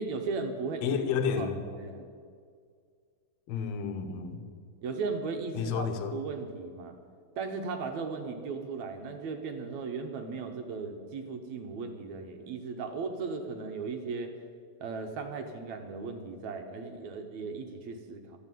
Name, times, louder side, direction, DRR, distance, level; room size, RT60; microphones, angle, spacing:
voice 1, 0.0-1.0 1.3-2.1 4.8-6.9 7.4-14.3 14.8-18.4, right 4 dB, 70° right, 5 dB, 1.9 m, -37 dB
voice 2, 0.8-1.6 3.5-4.4 5.5-6.2, left 6 dB, 70° left, 6 dB, 1.6 m, -31 dB
14.0 x 8.0 x 9.1 m, 2.1 s
omnidirectional pair, 4.2 m